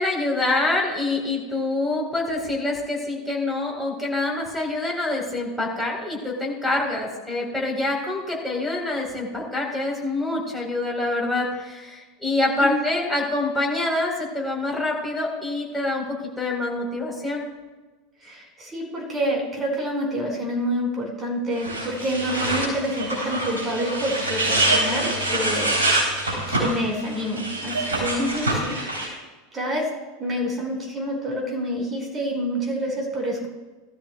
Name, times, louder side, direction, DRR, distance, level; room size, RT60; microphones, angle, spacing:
voice 1, 0.0-17.4 28.2-28.5, left 2 dB, ahead, -2 dB, 4.0 m, -26 dB
voice 2, 12.6-13.1 18.2-28.2 28.6-28.7 29.0-29.2 29.5-29.9 30.2-33.5, equal, 25° right, 0 dB, 4.7 m, -28 dB
sound 1, 21.5-29.1, right 2 dB, 80° right, 3.5 m, -25 dB
18.0 x 13.0 x 2.3 m, 1.2 s
figure-of-eight pair, 80°, 0 cm